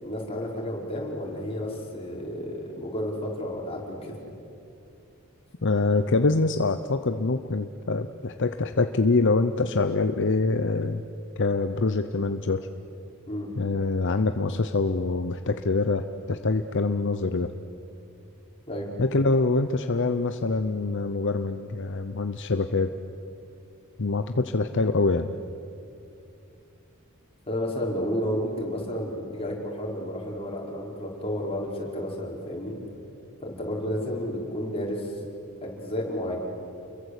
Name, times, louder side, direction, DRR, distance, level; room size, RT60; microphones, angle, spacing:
voice 1, 0.0-4.2 13.3-13.5 18.7-18.9 27.5-32.8 33.4-35.1 35.6-36.4, equal, 25° left, -2 dB, 5.5 m, -31 dB
voice 2, 5.6-11.0 11.4-12.6 13.6-17.5 19.0-22.9 24.0-25.3, left 3 dB, 60° left, 9 dB, 0.8 m, -25 dB
29.5 x 22.5 x 8.3 m, 2.6 s
head